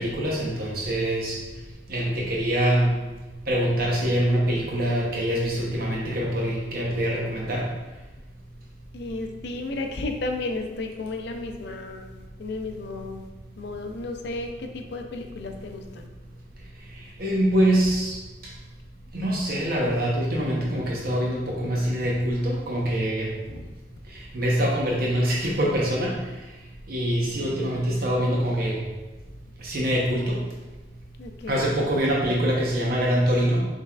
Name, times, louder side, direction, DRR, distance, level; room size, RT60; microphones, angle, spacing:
voice 1, 0.0-1.4 1.9-2.9 3.5-7.6 17.2-18.2 19.1-23.3 24.3-26.1 26.9-28.8 29.6-30.4 31.5-33.6, equal, 50° right, -3 dB, 0.8 m, -24 dB
voice 2, 8.9-12.1 12.4-13.2 13.6-16.1 23.5-23.7 31.2-31.6, left 2 dB, 60° left, 4 dB, 0.5 m, -33 dB
5.6 x 3.3 x 2.3 m, 1.1 s
head